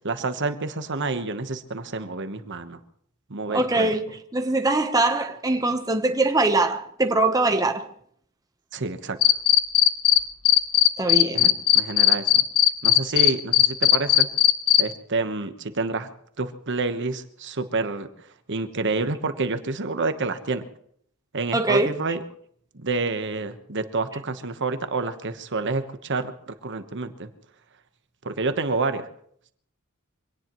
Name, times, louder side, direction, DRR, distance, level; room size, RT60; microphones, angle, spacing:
voice 1, 0.0-2.8 3.3-3.9 8.7-9.2 11.3-12.4 12.8-14.3 14.8-16.1 16.4-18.1 18.5-20.6 21.3-22.2 22.7-27.3 28.2-29.1, right 3 dB, 60° right, 1.2 m, -28 dB
voice 2, 3.5-7.8 11.0-11.5 21.5-21.9, right 2 dB, 15° right, 1.0 m, -22 dB
Cricket, 9.2-10.2 10.4-14.8, left 13 dB, 80° left, 0.9 m, -16 dB
25.0 x 18.0 x 3.1 m
head